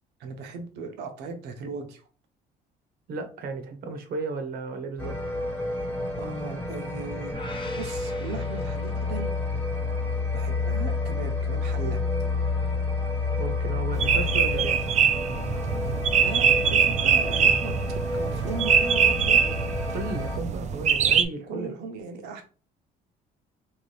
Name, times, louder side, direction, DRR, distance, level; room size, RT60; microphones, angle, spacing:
voice 1, 0.2-2.0 6.2-7.4 7.7-9.3 10.0-10.1 10.3-12.0 15.8-17.8 18.1-19.5 21.5-22.4, right 4 dB, 90° right, 5 dB, 0.9 m, -37 dB
voice 2, 3.1-5.1 13.4-14.8 19.9-21.7, right 3 dB, 65° right, 7 dB, 0.8 m, -33 dB
sound 1, 5.0-20.4, left 3 dB, 10° left, 1.2 m, -29 dB
sound 2, 7.3-9.5, left 3 dB, 30° left, 0.6 m, -44 dB
sound 3, 14.0-21.3, right 7 dB, 45° right, 0.4 m, -23 dB
3.2 x 2.8 x 3.2 m, 0.38 s
cardioid pair, 110°, 17 cm